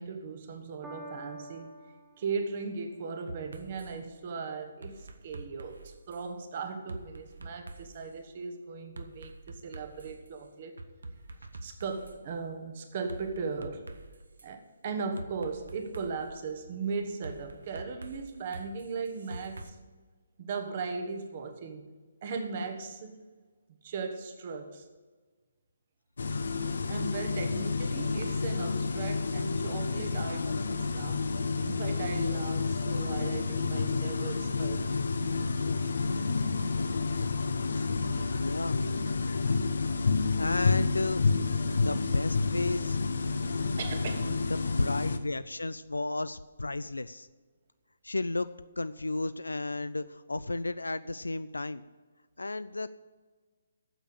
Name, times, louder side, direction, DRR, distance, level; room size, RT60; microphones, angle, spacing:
voice 1, 0.0-1.7 2.2-10.8 11.6-13.9 14.4-19.8 20.4-21.9 22.2-23.2 23.8-24.8 26.9-31.3 31.7-35.3 43.8-44.5, right 4 dB, 40° right, 5 dB, 1.2 m, -38 dB
Piano, 0.8-7.4 8.2-8.3, right 1 dB, 10° right, 1.7 m, -52 dB
sound 1, 3.3-3.9 4.8-6.3 6.9-8.1 9.0-10.3 10.8-12.2 13.1-14.5 15.2-16.3 17.2-19.7, right 2 dB, 75° right, 0.9 m, -45 dB
sound 2, 26.2-45.2, left 4 dB, 65° left, 0.7 m, -29 dB
voice 2, 38.2-38.8 40.3-41.2 41.8-43.0 44.5-47.3 48.0-48.5 48.8-51.8 52.4-53.1, left 2 dB, 85° left, 14 dB, 0.3 m, -33 dB
8.9 x 6.8 x 8.3 m, 1.4 s
figure-of-eight pair, 140°, 0 cm